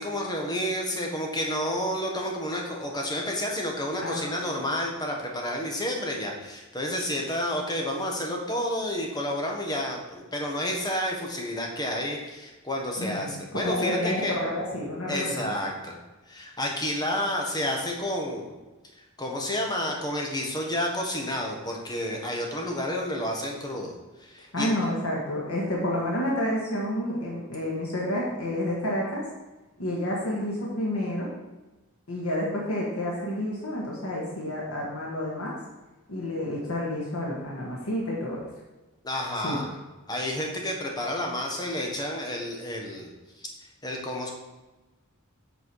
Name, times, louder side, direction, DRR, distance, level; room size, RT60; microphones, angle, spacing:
voice 1, 0.0-14.4 15.1-15.9 16.3-18.5 19.2-23.9 24.2-24.8 39.0-39.8 40.1-43.1 43.4-43.5 43.8-44.3, left 1 dB, 20° left, 0 dB, 1.3 m, -30 dB
voice 2, 4.0-4.6 13.0-15.5 24.5-29.2 29.8-31.3 32.1-35.5 36.1-38.4 39.4-39.6, left 1 dB, 90° left, -4 dB, 1.6 m, -29 dB
7.9 x 4.6 x 4.8 m, 1.1 s
head